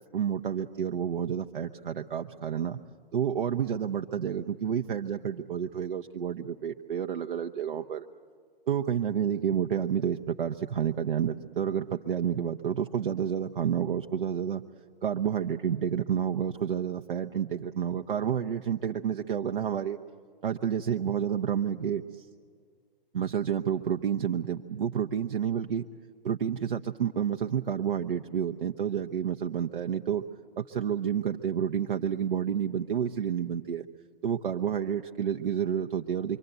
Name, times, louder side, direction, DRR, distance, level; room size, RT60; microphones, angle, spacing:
voice 1, 0.0-2.8 3.1-8.1 8.7-14.6 15.0-20.0 20.4-22.3 23.1-25.8 26.2-30.2 30.6-33.8 34.2-36.4, right 8 dB, 65° right, 5 dB, 0.8 m, -30 dB
25.5 x 24.0 x 8.0 m, 2.1 s
figure-of-eight pair, 135°, 30 cm